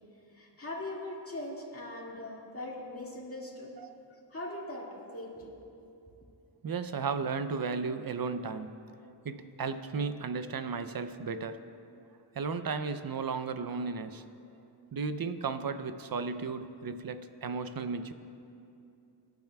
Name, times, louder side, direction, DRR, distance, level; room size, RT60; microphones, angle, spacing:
voice 1, 0.3-3.7 4.1-4.9 5.1-5.6, left 1 dB, 30° left, -4 dB, 2.0 m, -40 dB
voice 2, 6.6-8.8 9.2-11.7 12.3-14.2 14.9-18.1, right 5 dB, 55° right, 10 dB, 0.6 m, -34 dB
22.0 x 10.5 x 2.3 m, 2.7 s
wide cardioid pair, 95°, 43 cm